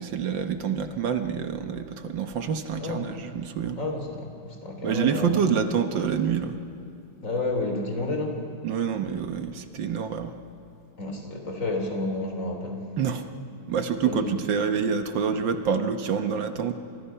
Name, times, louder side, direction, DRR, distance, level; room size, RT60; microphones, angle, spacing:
voice 1, 0.0-3.8 4.8-6.6 8.6-10.3 13.0-13.2 13.7-16.7, right 7 dB, 70° right, 7 dB, 1.8 m, -27 dB
voice 2, 2.8-3.2 3.8-5.6 7.2-8.5 11.0-12.9 14.0-14.3, left 2 dB, 40° left, 4 dB, 3.7 m, -30 dB
29.5 x 27.0 x 5.7 m, 2.8 s
omnidirectional pair, 2.1 m